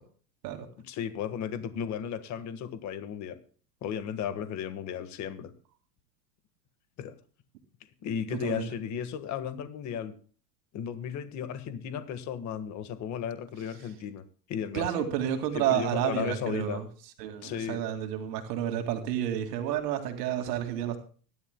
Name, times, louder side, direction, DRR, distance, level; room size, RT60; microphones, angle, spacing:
voice 1, 0.8-3.4 3.8-5.5 7.0-7.1 8.0-10.2 10.7-14.2 14.5-15.1 15.5-16.8 17.4-17.8, left 8 dB, 35° left, 10 dB, 1.5 m, -35 dB
voice 2, 8.3-8.7 14.7-16.8 17.2-21.0, right 10 dB, 75° right, 5 dB, 2.3 m, -30 dB
24.5 x 11.0 x 2.2 m, 0.41 s
supercardioid pair, 130°, 48 cm